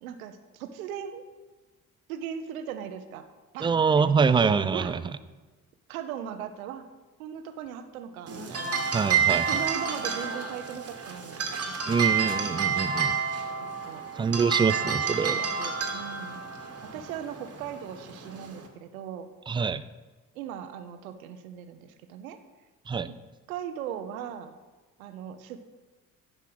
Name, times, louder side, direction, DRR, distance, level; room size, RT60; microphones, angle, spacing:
voice 1, 0.0-1.2 2.1-3.2 3.5-3.7 4.1-4.2 4.7-4.9 5.9-6.8 7.2-12.0 13.9-14.0 15.3-16.4 16.9-19.3 20.3-22.4 23.5-24.5 25.0-25.6, right 9 dB, 80° right, 9 dB, 0.8 m, -38 dB
voice 2, 3.6-5.0 8.9-9.5 11.9-13.2 14.2-15.4 19.5-19.8 22.9-23.1, right 5 dB, 15° right, 14 dB, 0.3 m, -25 dB
sound 1, 8.3-18.7, right 6 dB, 35° right, 1.5 m, -29 dB
9.9 x 5.5 x 6.2 m, 1.2 s
figure-of-eight pair, 45°, 41 cm